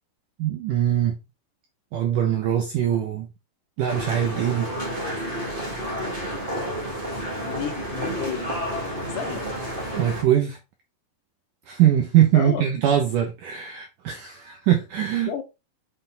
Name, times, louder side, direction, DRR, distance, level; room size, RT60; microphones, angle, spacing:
voice 1, 0.4-1.2 1.9-3.3 3.8-4.7 10.0-10.6 11.7-15.3, right 11 dB, 75° right, 1.9 m, -22 dB
sound 1, 3.9-10.2, equal, 20° right, 1.3 m, -30 dB
voice 2, 7.4-8.6 9.1-9.4 12.3-12.6 15.3-15.4, left 9 dB, 80° left, 2.9 m, -32 dB
7.7 x 4.2 x 3.8 m
omnidirectional pair, 4.8 m